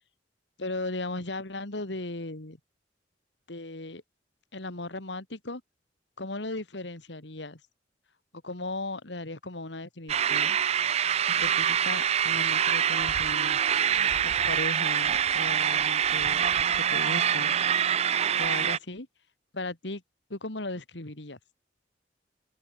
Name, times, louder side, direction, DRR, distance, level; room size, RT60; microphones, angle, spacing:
voice 1, 0.6-2.6 3.5-4.0 4.5-5.6 6.2-7.6 8.3-10.6 11.3-13.6 14.2-17.5 18.4-19.1 19.5-20.0 20.3-21.4, left 2 dB, 70° left, 2.5 m, -37 dB
sound 1, 10.1-18.8, right 9 dB, 35° right, 0.4 m, -25 dB
open air
head